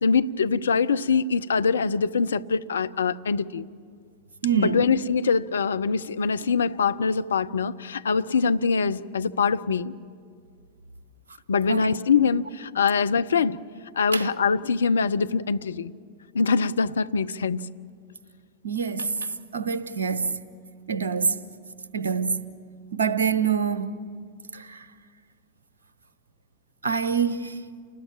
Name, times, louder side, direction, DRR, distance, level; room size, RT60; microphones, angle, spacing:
voice 1, 0.0-3.7 4.5-9.9 11.5-13.6 14.0-15.9 16.3-17.6, left 5 dB, 70° left, 0.6 m, -23 dB
voice 2, 4.4-4.8 11.7-11.9 14.1-14.3 18.6-20.4 20.9-21.5 21.9-22.6 22.9-24.1 24.5-24.9 26.8-27.6, right 6 dB, 70° right, 1.0 m, -26 dB
29.0 x 20.0 x 7.3 m
figure-of-eight pair, 90°, 0 cm